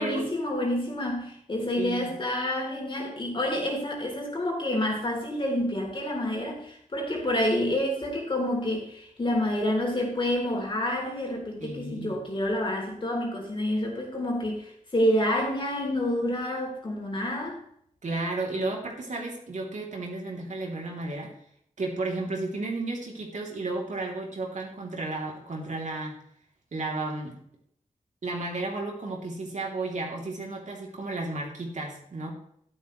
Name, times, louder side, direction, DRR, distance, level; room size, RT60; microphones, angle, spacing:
voice 1, 0.0-17.6, left 1 dB, 35° left, 0 dB, 3.4 m, -28 dB
voice 2, 1.8-2.1 11.6-12.2 18.0-21.3 21.8-26.2 26.7-27.4 28.2-32.3, right 2 dB, 60° right, 0 dB, 3.1 m, -33 dB
13.0 x 11.0 x 3.2 m, 0.68 s
wide cardioid pair, 130°, 14 cm